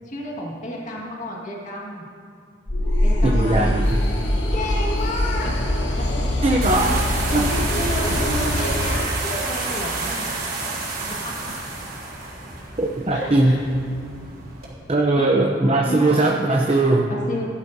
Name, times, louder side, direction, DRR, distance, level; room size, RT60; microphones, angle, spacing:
voice 1, 0.1-2.0 3.0-3.8 4.5-6.3 7.2-10.3 11.2-11.4 13.1-13.7 15.2-15.4 15.9-16.0 17.1-17.4, equal, 45° left, -3 dB, 1.8 m, -31 dB
sound 1, 2.7-9.0, left 1 dB, 80° left, 1.3 m, -23 dB
voice 2, 3.2-4.0 6.4-7.0 7.3-7.5 12.8-13.6 14.9-17.1, right 2 dB, 35° right, 0 dB, 0.7 m, -19 dB
sound 2, 6.6-14.7, right 3 dB, 55° right, 3.4 m, -29 dB
17.5 x 12.0 x 2.8 m, 2.2 s
head